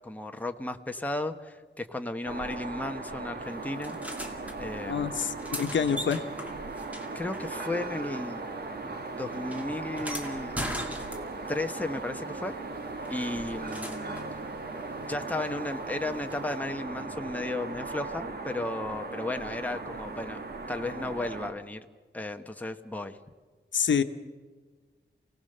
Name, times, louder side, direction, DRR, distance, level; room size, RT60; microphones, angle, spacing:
voice 1, 0.0-4.0 4.5-5.2 7.1-8.4 9.1-10.6 11.5-12.5 13.1-14.2 15.0-20.4 20.7-21.9 22.1-23.2, left 2 dB, 10° left, 5 dB, 1.1 m, -34 dB
sound 1, 2.2-21.5, right 3 dB, 60° right, 1.9 m, -38 dB
sound 2, 3.8-4.6 5.2-8.1 8.4-11.6 13.0-14.3 16.3-16.4, equal, 10° right, 2.4 m, -40 dB
voice 2, 4.9-6.2 23.7-24.0, left 7 dB, 85° left, 8 dB, 1.1 m, -27 dB
29.5 x 18.0 x 6.7 m, 1.4 s
wide cardioid pair, 155°, 19 cm